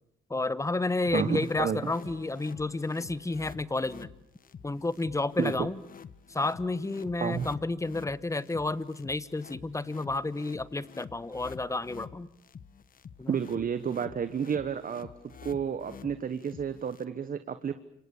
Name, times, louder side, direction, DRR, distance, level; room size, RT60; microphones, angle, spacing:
voice 1, 0.3-4.1 4.6-5.8 6.3-12.3 13.2-13.3, left 2 dB, 15° left, 16 dB, 1.2 m, -31 dB
sound 1, 1.0-17.0, left 6 dB, 45° left, 1.3 m, -49 dB
voice 2, 1.1-1.9 5.4-5.7 7.2-7.5 13.3-15.1 15.4-17.8, right 7 dB, 45° right, 11 dB, 1.3 m, -31 dB
Strum, 2.0-6.2, right 6 dB, 85° right, 3.5 m, -60 dB
29.0 x 25.5 x 7.1 m, 0.75 s
cardioid pair, 90°, 20 cm